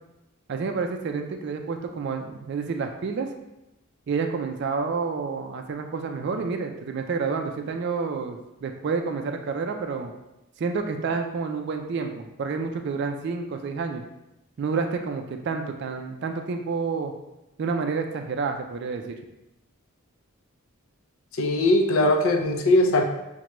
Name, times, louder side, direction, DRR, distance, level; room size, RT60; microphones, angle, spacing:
voice 1, 0.5-3.3 4.1-10.1 10.6-14.0 14.6-17.1 17.6-19.1, right 4 dB, 50° right, 4 dB, 0.3 m, -29 dB
voice 2, 21.4-23.0, left 1 dB, 70° left, 4 dB, 0.5 m, -20 dB
6.0 x 2.2 x 2.9 m, 0.93 s
head